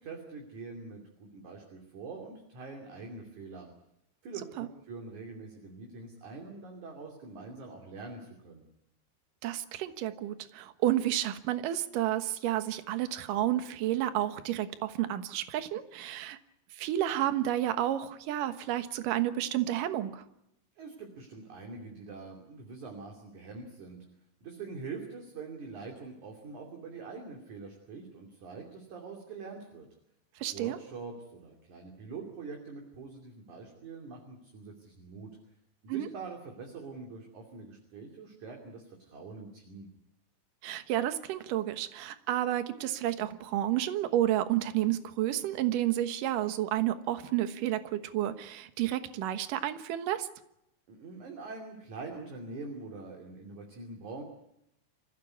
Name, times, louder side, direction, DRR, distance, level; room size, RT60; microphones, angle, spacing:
voice 1, 0.0-3.7 4.2-8.7 20.8-24.0 24.4-29.9 30.5-35.3 35.8-39.9 50.9-54.2, right 4 dB, 45° right, 2 dB, 3.8 m, -44 dB
voice 2, 9.4-16.4 16.7-20.2 30.4-30.8 35.9-36.1 40.6-50.3, right 13 dB, 65° right, 10 dB, 2.3 m, -31 dB
27.5 x 15.5 x 9.7 m, 0.82 s
omnidirectional pair, 5.2 m